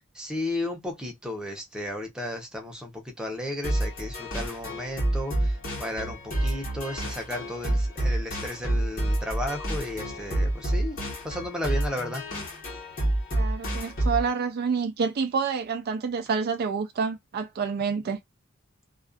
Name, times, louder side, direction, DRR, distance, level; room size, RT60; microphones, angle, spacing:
voice 1, 0.1-11.0 11.2-12.2, left 1 dB, 5° right, 0.7 m, -34 dB
sound 1, 3.6-14.3, right 1 dB, 45° left, 1.1 m, -28 dB
voice 2, 13.3-18.2, right 5 dB, 50° right, 0.4 m, -28 dB
2.4 x 2.3 x 2.3 m
head